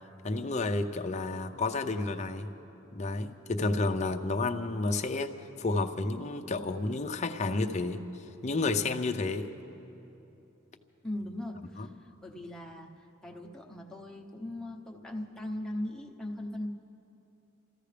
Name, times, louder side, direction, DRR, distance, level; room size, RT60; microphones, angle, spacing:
voice 1, 0.2-2.5 2.9-5.3 5.6-9.5 11.6-11.9, left 3 dB, 30° left, 7 dB, 0.6 m, -31 dB
voice 2, 11.0-11.9 12.2-16.7, left 1 dB, 5° left, -2 dB, 0.9 m, -39 dB
28.5 x 14.5 x 3.4 m, 2.9 s
head